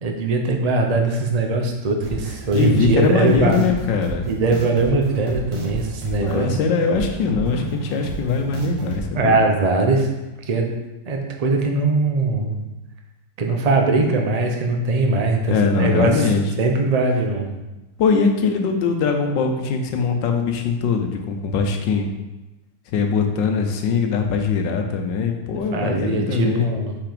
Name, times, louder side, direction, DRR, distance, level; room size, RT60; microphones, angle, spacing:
voice 1, 0.0-3.7 4.3-6.5 9.1-10.1 10.5-10.7 11.1-12.6 13.4-16.3 16.6-17.6 25.7-27.0, right 3 dB, 50° right, 2 dB, 0.4 m, -21 dB
sound 1, 2.0-9.0, right 2 dB, 80° right, 1.9 m, -32 dB
voice 2, 2.5-4.3 6.2-9.4 15.5-16.4 18.0-22.1 22.9-26.7, left 5 dB, 85° left, 4 dB, 1.5 m, -21 dB
5.9 x 4.8 x 5.1 m, 1.0 s
omnidirectional pair, 1.9 m